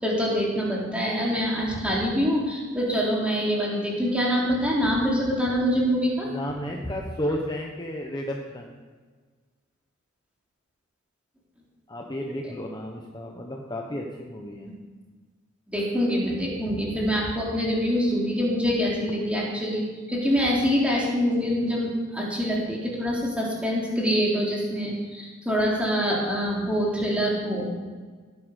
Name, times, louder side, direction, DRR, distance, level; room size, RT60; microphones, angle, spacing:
voice 1, 0.0-6.3 6.8-6.9 15.7-27.7, equal, 5° right, -4 dB, 3.6 m, -25 dB
voice 2, 6.3-8.8 11.9-14.7, equal, 20° left, 1 dB, 1.3 m, -33 dB
16.0 x 10.0 x 6.6 m, 1.5 s
head